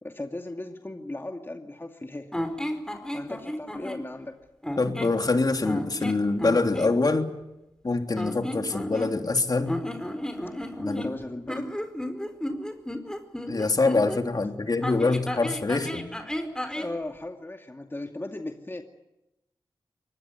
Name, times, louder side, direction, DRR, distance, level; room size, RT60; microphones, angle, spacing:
voice 1, 0.0-2.3 3.1-4.4 10.9-11.7 14.5-14.7 16.7-18.8, left 2 dB, 25° left, 4 dB, 2.4 m, -37 dB
sound 1, 2.3-4.0 4.6-5.2 5.6-6.9 8.1-9.4 9.7-14.2 14.8-16.9, equal, 10° left, 4.7 m, -33 dB
voice 2, 4.8-7.3 7.8-9.8 10.8-11.2 13.5-16.1, left 3 dB, 50° left, 5 dB, 3.3 m, -25 dB
24.5 x 20.0 x 9.6 m, 0.92 s
cardioid pair, 45°, 9 cm